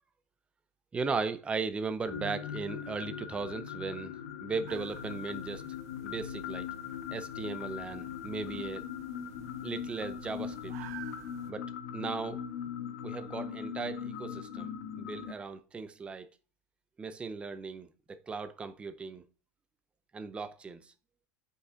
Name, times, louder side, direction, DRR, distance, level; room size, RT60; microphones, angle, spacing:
voice 1, 0.9-4.1 4.4-5.6 6.0-6.7 7.1-8.8 9.6-10.7 11.5-11.7 11.9-12.4 13.0-14.7 15.0-16.3 17.0-19.2 20.1-20.8, right 4 dB, 15° right, 0.5 m, -37 dB
sound 1, 2.0-15.3, left 8 dB, 85° left, 1.3 m, -40 dB
sound 2, 4.7-11.5, right 11 dB, 85° right, 0.9 m, -52 dB
9.7 x 5.5 x 3.8 m
supercardioid pair, 150°, 8 cm